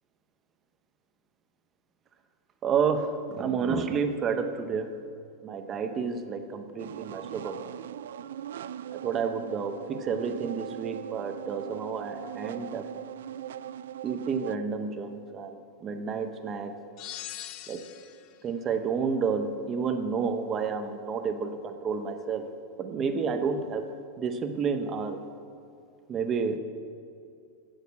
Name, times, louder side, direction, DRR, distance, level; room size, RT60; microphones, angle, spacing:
voice 1, 2.6-5.0 5.4-7.8 8.9-12.9 14.0-16.7 17.7-17.8 18.4-22.5 22.8-23.9 24.2-25.2 26.1-26.6, right 5 dB, 20° right, 7 dB, 0.7 m, -30 dB
sound 1, 6.8-14.6, right 10 dB, 85° right, 0.4 m, -40 dB
sound 2, 17.0-18.3, left 12 dB, 30° left, 0.4 m, -41 dB
15.5 x 6.5 x 8.1 m, 2.4 s
supercardioid pair, 180°, 0 cm